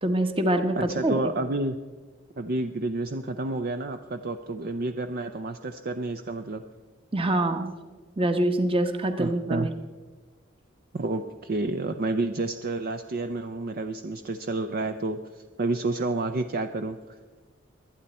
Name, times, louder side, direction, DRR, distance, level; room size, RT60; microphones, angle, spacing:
voice 1, 0.0-0.8 1.0-1.1 7.1-7.7 8.2-9.7, right 1 dB, 30° right, 7 dB, 1.1 m, -24 dB
voice 2, 0.8-1.8 2.4-6.6 9.2-9.7 10.9-17.2, right 2 dB, 50° right, 8 dB, 0.6 m, -30 dB
24.0 x 9.0 x 4.3 m, 1.3 s
head